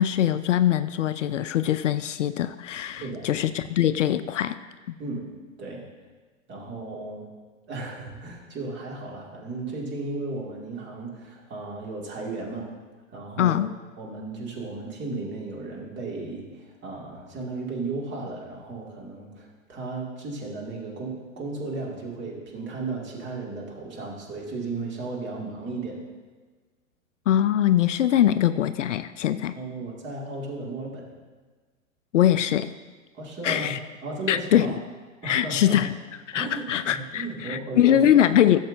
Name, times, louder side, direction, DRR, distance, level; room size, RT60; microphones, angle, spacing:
voice 1, 0.0-4.6 4.9-5.0 13.4-13.7 27.3-29.6 32.1-32.7 33.4-33.8 34.3-34.7 35.2-35.9 36.3-38.6, left 11 dB, 65° left, 13 dB, 0.5 m, -22 dB
voice 2, 6.5-7.3 7.7-12.7 13.1-13.6 14.0-26.0 29.5-31.1 33.1-34.7 35.2-35.8 36.3-38.3, right 3 dB, 25° right, -2 dB, 2.2 m, -35 dB
16.0 x 7.3 x 2.6 m, 1.4 s
figure-of-eight pair, 95°, 40 cm